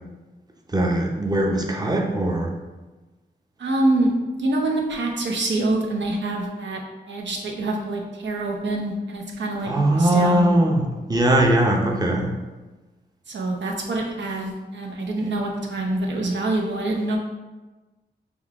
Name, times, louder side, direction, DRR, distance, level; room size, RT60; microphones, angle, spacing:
voice 1, 0.7-2.5 9.6-12.3, right 1 dB, 20° right, 1 dB, 0.7 m, -20 dB
voice 2, 3.6-6.8 7.1-10.6 13.3-17.2, right 2 dB, 80° right, 0 dB, 0.8 m, -25 dB
5.4 x 2.3 x 3.5 m, 1.2 s
wide cardioid pair, 90°, 19 cm